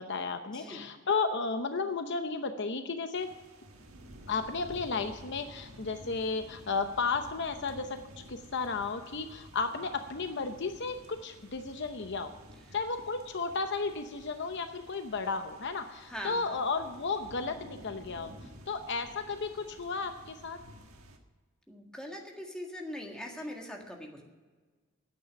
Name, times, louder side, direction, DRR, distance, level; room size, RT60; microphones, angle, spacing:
voice 1, 0.0-3.3 4.3-8.0 8.3-12.3 12.7-20.6, left 4 dB, 55° left, 8 dB, 0.8 m, -33 dB
voice 2, 0.5-0.8 16.1-16.4 21.7-24.2, equal, 5° left, 0 dB, 1.8 m, -41 dB
sound 1, 3.1-21.2, right 1 dB, 80° right, 1.6 m, -52 dB
9.8 x 8.5 x 9.8 m, 1.4 s
head